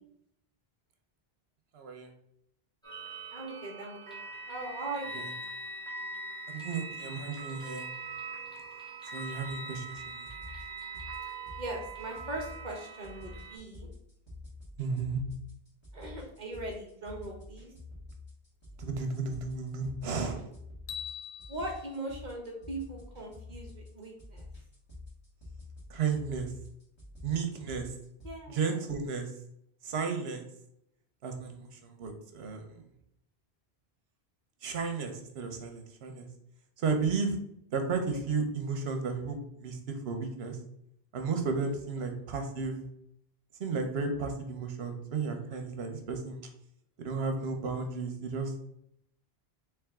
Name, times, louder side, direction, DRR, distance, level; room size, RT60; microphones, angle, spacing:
voice 1, 1.7-2.1 5.1-5.3 6.5-7.9 9.1-10.3 14.8-15.2 18.8-20.5 25.9-26.5 27.2-27.9 28.5-29.3 29.8-30.4 31.2-32.8 34.6-36.3 36.8-37.4 37.7-40.6 41.1-42.8 43.6-46.4 47.0-48.6, right 5 dB, 80° right, 5 dB, 1.0 m, -33 dB
sound 1, 2.8-13.6, right 3 dB, 5° left, 1.2 m, -42 dB
voice 2, 3.3-4.2 4.5-5.3 11.6-13.9 15.9-17.7 21.5-24.5 28.2-28.8, right 2 dB, 50° right, 0 dB, 1.0 m, -40 dB
sound 2, 9.9-28.3, left 2 dB, 25° left, 1.5 m, -49 dB
sound 3, 20.9-23.1, left 9 dB, 60° left, 0.6 m, -45 dB
3.4 x 3.3 x 3.5 m, 0.76 s
omnidirectional pair, 1.1 m